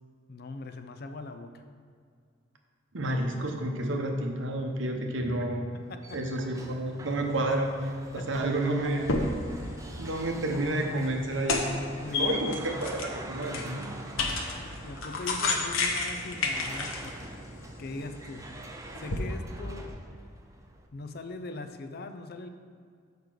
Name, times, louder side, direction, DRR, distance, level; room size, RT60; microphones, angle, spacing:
voice 1, 0.3-1.6 5.7-6.2 8.2-8.3 9.6-10.1 12.0-12.5 14.2-17.3 17.8-20.0 20.9-22.5, left 2 dB, 50° left, 7 dB, 0.5 m, -41 dB
voice 2, 2.9-5.7 6.1-9.1 10.0-11.6 12.1-13.9, right 1 dB, 65° right, 3 dB, 0.9 m, -30 dB
sound 1, 5.7-20.9, right 2 dB, 15° right, 0.4 m, -46 dB
sound 2, 8.8-19.2, left 3 dB, 85° left, 1.0 m, -33 dB
6.6 x 5.2 x 6.0 m, 2.1 s
head